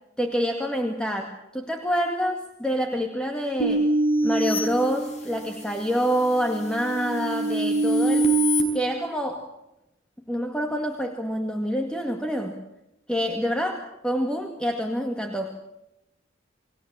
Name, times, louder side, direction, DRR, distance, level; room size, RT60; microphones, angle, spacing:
voice 1, 0.2-3.9 4.2-8.3 8.7-9.5 10.3-12.5 13.1-15.6, equal, 5° left, 3 dB, 2.1 m, -27 dB
sound 1, 3.6-5.6 6.1-8.6, right 2 dB, 35° left, 5.3 m, -24 dB
30.0 x 21.0 x 7.5 m, 0.91 s
head